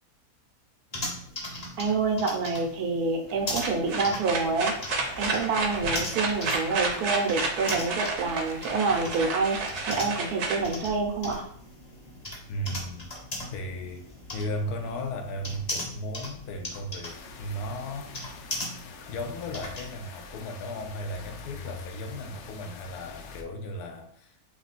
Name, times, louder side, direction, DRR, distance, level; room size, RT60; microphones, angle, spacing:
sound 1, 0.9-19.9, left 1 dB, 35° left, 0.8 m, -39 dB
voice 1, 1.8-4.7 5.2-11.4, right 4 dB, 85° right, 1.3 m, -27 dB
sound 2, 3.3-11.3, right 3 dB, 60° right, 0.9 m, -31 dB
voice 2, 12.5-13.1 13.5-14.0 14.3-18.4 19.1-24.4, equal, 85° left, 1.2 m, -36 dB
sound 3, 17.0-23.4, left 4 dB, 65° left, 0.7 m, -44 dB
3.1 x 3.1 x 4.1 m
omnidirectional pair, 1.6 m